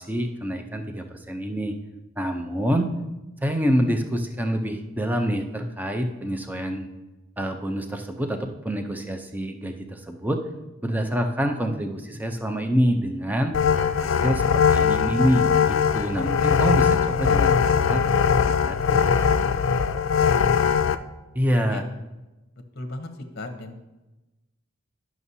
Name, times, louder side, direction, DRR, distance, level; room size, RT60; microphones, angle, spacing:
voice 1, 0.0-1.8 2.2-2.9 3.4-6.9 7.4-10.4 10.8-13.6 14.0-18.0 18.6-19.1 21.3-21.8, equal, 10° right, 5 dB, 0.5 m, -26 dB
sound 1, 13.5-20.9, left 6 dB, 75° left, 0.4 m, -21 dB
voice 2, 18.7-19.9 21.7-21.8 22.7-23.1 23.3-23.8, left 2 dB, 50° left, 6 dB, 0.8 m, -37 dB
11.0 x 6.0 x 2.7 m, 1.1 s
head